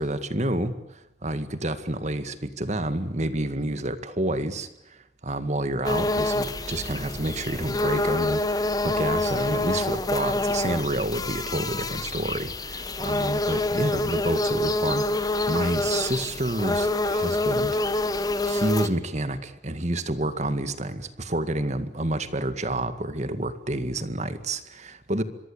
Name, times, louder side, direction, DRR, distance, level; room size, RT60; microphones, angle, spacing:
voice 1, 0.0-17.8 18.4-25.2, right 1 dB, 40° right, 11 dB, 2.0 m, -29 dB
sound 1, 5.8-18.9, left 2 dB, 20° left, 1.5 m, -26 dB
26.0 x 23.5 x 8.7 m, 0.88 s
head